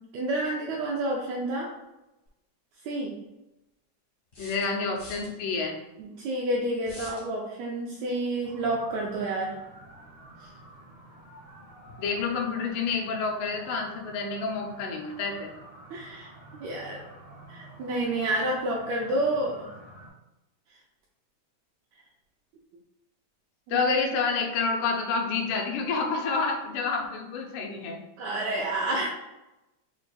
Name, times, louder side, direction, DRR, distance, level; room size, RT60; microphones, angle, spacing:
voice 1, 0.0-1.7 2.8-3.2 6.0-9.6 10.4-10.5 15.9-16.3 16.6-17.0 17.5-19.6 23.7-23.8 28.2-29.1, right 1 dB, 85° right, -2 dB, 1.5 m, -29 dB
sound 1, 2.3-2.4 4.3-5.3 6.8-7.3, left 2 dB, 55° left, 0.8 m, -45 dB
voice 2, 4.4-5.7 12.0-15.5 23.7-28.0, left 4 dB, 85° left, 1 dB, 2.1 m, -28 dB
sound 2, 8.4-20.1, right 1 dB, 60° right, 1.8 m, -49 dB
6.3 x 2.5 x 2.2 m, 0.97 s
omnidirectional pair, 3.6 m